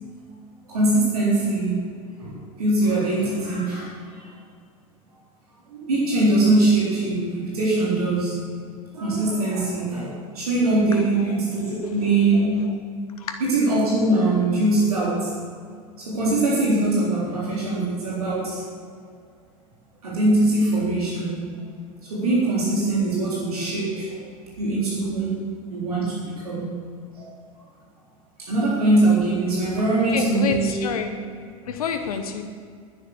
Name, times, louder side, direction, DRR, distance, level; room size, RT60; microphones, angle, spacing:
voice 1, 0.7-1.8 2.2-4.3 5.7-8.4 8.9-12.6 13.4-15.3 16.0-18.6 20.0-21.5 22.0-24.3 24.6-25.4 25.7-26.8 27.1-27.3 28.4-30.8, right 2 dB, 80° right, -7 dB, 3.8 m, -22 dB
voice 2, 30.1-31.1 31.6-32.4, left 6 dB, 80° left, 6 dB, 1.1 m, -28 dB
10.5 x 9.7 x 6.7 m, 2.1 s
hypercardioid pair, 80°, 19 cm